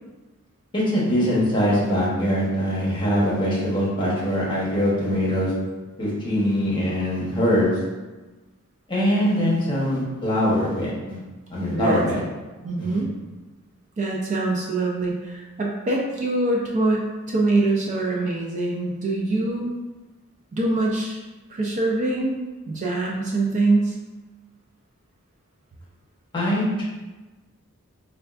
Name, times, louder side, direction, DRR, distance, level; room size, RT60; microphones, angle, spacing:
voice 1, 0.7-5.5 6.0-7.7 8.9-11.2 11.5-12.2 12.9-13.0 26.3-26.8, equal, 20° left, -7 dB, 0.9 m, -22 dB
voice 2, 11.7-12.0 12.6-13.2 14.0-19.7 20.5-21.2 21.5-22.4 22.7-24.0, right 2 dB, 35° right, -2 dB, 0.3 m, -24 dB
4.3 x 2.3 x 2.4 m, 1.2 s
head